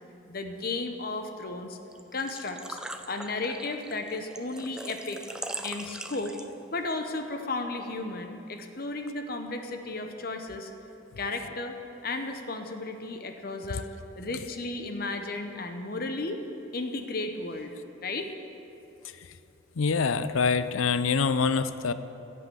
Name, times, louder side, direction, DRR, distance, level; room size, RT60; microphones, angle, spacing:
voice 1, 0.3-1.8 2.1-2.8 3.1-5.2 5.6-6.4 6.7-10.7 11.2-11.8 12.0-13.9 14.2-16.4 16.7-17.7 18.0-18.3, left 2 dB, 45° left, 6 dB, 0.9 m, -34 dB
Engine / Trickle dribble / Fill (with liquid), 1.9-6.8, right 1 dB, 5° right, 0.3 m, -41 dB
voice 2, 19.8-21.9, left 5 dB, 85° left, 13 dB, 0.5 m, -25 dB
15.5 x 5.6 x 8.0 m, 2.9 s
head